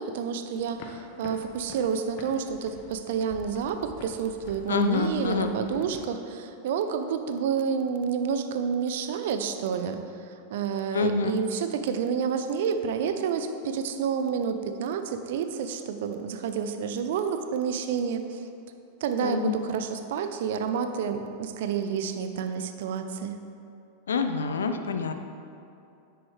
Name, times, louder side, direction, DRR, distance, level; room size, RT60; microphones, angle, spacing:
voice 1, 0.0-10.0 10.5-18.4 19.0-23.4, right 6 dB, 60° right, 8 dB, 0.6 m, -29 dB
sound 1, 0.6-6.0, left 3 dB, 50° left, 1.0 m, -47 dB
voice 2, 4.7-5.5 10.9-11.3 19.2-19.6 24.1-25.1, left 4 dB, 75° left, 8 dB, 0.6 m, -27 dB
10.0 x 7.9 x 3.2 m, 2.6 s
figure-of-eight pair, 90°, 0 cm